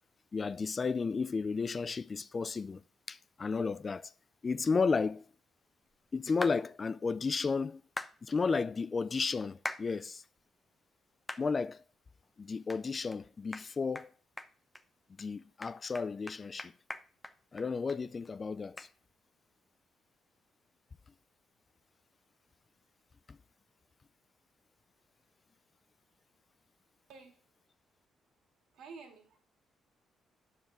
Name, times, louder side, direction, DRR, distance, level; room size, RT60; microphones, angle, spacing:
voice 1, 0.3-2.8 3.1-4.1 4.4-5.2 6.1-7.8 8.2-10.2 11.4-11.8 12.4-14.1 15.2-16.7 17.5-18.9 23.3-23.4, left 4 dB, 35° left, 0.4 m, -33 dB
sound 1, 6.4-6.6 8.0-8.1 9.7-9.9 10.4-10.5 11.3-11.5 11.9-12.0 12.7-12.8 13.1-13.2 13.5-13.7 14.0-14.1 14.4-14.8 15.2-15.3 15.6-18.0 18.3-18.4 18.8-18.9, left 1 dB, 10° left, 0.8 m, -41 dB
voice 2, 28.7-29.4, right 4 dB, 85° right, 2.5 m, -50 dB
11.0 x 7.1 x 3.7 m
cardioid pair, 90°, 0 cm